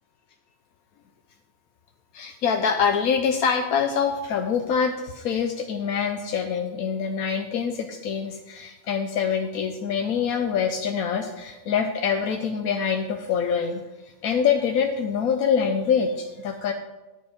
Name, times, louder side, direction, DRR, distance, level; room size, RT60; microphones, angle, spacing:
voice 1, 2.1-13.8 14.2-16.7, left 6 dB, 85° left, 4 dB, 1.2 m, -25 dB
10.5 x 7.8 x 5.1 m, 1.1 s
omnidirectional pair, 1.5 m